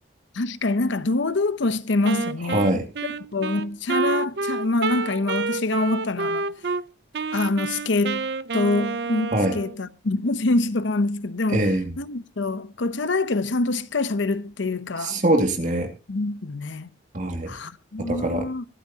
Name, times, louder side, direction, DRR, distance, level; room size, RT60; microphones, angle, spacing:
voice 1, 0.3-2.8 3.3-6.5 7.3-8.2 8.5-15.2 16.1-16.9 17.5-18.6, left 2 dB, 75° left, 0.8 m, -25 dB
Wind instrument woodwind instrument, 2.0-6.8 7.1-9.8, right 4 dB, 55° right, 0.5 m, -28 dB
voice 2, 2.5-2.8 9.3-9.6 11.5-11.9 15.0-15.9 17.1-17.5 18.0-18.5, right 1 dB, 40° right, 2.3 m, -23 dB
23.5 x 8.3 x 2.8 m
head